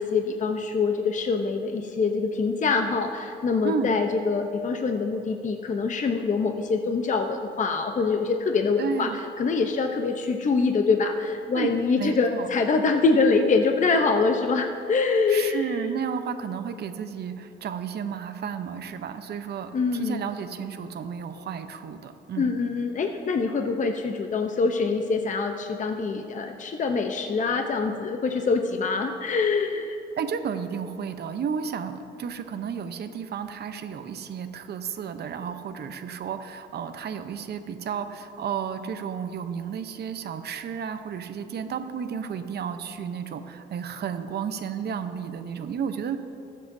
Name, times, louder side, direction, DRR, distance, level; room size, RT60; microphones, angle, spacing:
voice 1, 0.0-9.1 9.4-15.6 19.7-20.2 22.4-30.0, left 4 dB, 40° left, 5 dB, 0.7 m, -24 dB
voice 2, 8.8-9.2 11.5-12.5 15.3-22.5 30.2-46.2, right 7 dB, 55° right, 8 dB, 0.8 m, -32 dB
20.5 x 7.5 x 2.7 m, 2.6 s
cardioid pair, 90°, 20 cm